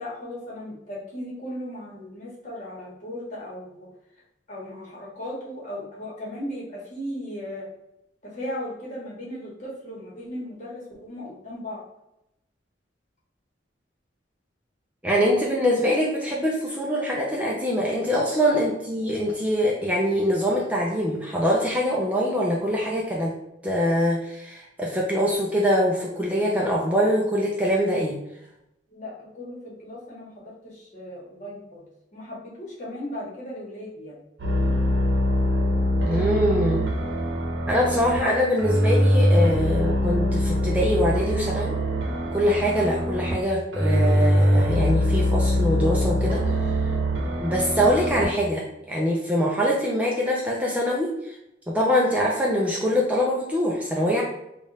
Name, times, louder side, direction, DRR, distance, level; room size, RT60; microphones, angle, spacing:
voice 1, 0.0-3.9 4.5-7.7 8.2-11.8 18.5-18.7 28.9-31.8 32.1-34.2, left 1 dB, 40° left, -5 dB, 1.4 m, -36 dB
voice 2, 15.0-23.4 23.6-28.2 36.1-36.9 37.7-41.7 42.3-46.4 47.4-51.4 51.7-54.2, equal, 10° right, -3 dB, 0.5 m, -23 dB
sound 1, 34.4-38.2 38.6-43.4 43.7-48.3, equal, 75° right, 0.8 m, -23 dB
3.5 x 2.4 x 4.0 m, 0.84 s
head